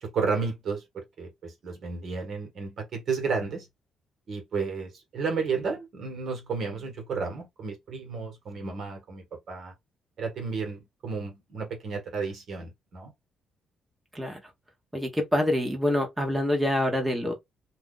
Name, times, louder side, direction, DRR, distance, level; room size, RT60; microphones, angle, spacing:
voice 1, 0.0-3.7 4.3-9.7 10.2-13.1, right 5 dB, 60° right, 1.5 m, -32 dB
voice 2, 14.9-17.3, left 1 dB, 10° right, 1.1 m, -26 dB
2.7 x 2.5 x 3.7 m
cardioid pair, 90°, 0 cm